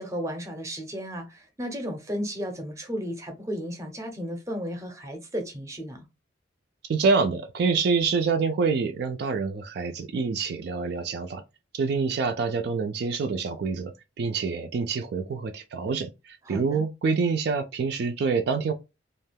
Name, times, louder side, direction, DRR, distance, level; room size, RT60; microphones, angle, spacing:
voice 1, 0.0-6.1 16.4-16.8, equal, 15° right, 0.6 m, -34 dB
voice 2, 6.9-11.4 11.7-18.7, right 4 dB, 55° right, 0.3 m, -26 dB
2.4 x 2.2 x 3.3 m
head